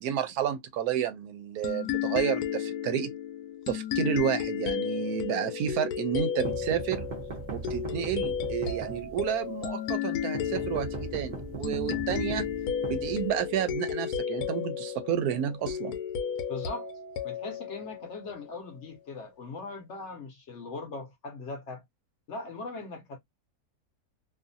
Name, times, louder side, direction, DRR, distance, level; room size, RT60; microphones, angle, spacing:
voice 1, 0.0-3.1 3.7-7.1 7.5-12.5 12.9-16.0, right 9 dB, 75° right, 1.0 m, -31 dB
sound 1, 1.6-18.8, left 8 dB, 80° left, 1.1 m, -33 dB
sound 2, 6.5-9.4 10.3-13.7, right 4 dB, 50° right, 0.6 m, -39 dB
voice 2, 16.5-16.9 17.2-21.8 22.3-23.2, left 3 dB, 60° left, 0.8 m, -40 dB
2.6 x 2.5 x 2.5 m
omnidirectional pair, 1.6 m